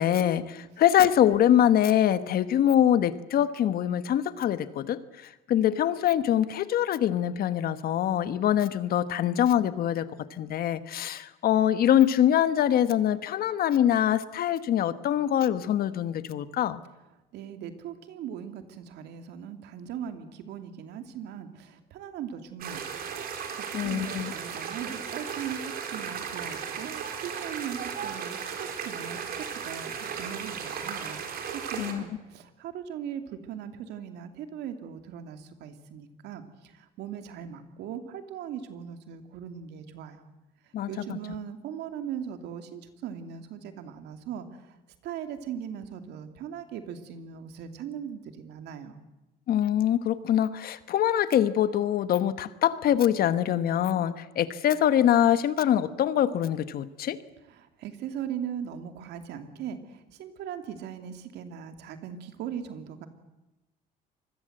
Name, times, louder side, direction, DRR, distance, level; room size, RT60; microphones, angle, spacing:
voice 1, 0.0-5.0 5.5-10.1 10.3-16.8 23.7-24.3 31.8-32.0 40.7-41.2 49.5-57.2, left 10 dB, 65° left, 13 dB, 1.3 m, -24 dB
voice 2, 17.3-31.2 31.5-40.2 40.9-44.7 45.0-49.0 57.5-63.1, right 8 dB, 80° right, 7 dB, 2.5 m, -39 dB
sound 1, 22.6-31.9, right 7 dB, 60° right, 4.1 m, -36 dB
25.5 x 21.0 x 7.9 m, 1.0 s
cardioid pair, 110°, 17 cm